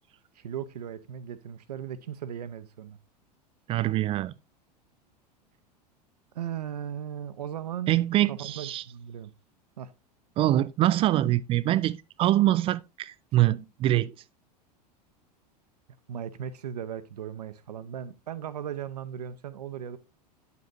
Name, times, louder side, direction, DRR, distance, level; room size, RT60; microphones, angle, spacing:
voice 1, 0.3-3.0 6.3-8.0 8.3-9.3 9.8-9.9 16.1-20.0, right 9 dB, 70° right, 0.7 m, -37 dB
voice 2, 3.7-4.3 7.9-8.8 10.4-14.2, right 14 dB, 25° right, 0.4 m, -24 dB
9.3 x 8.2 x 2.5 m
figure-of-eight pair, 85°, 21 cm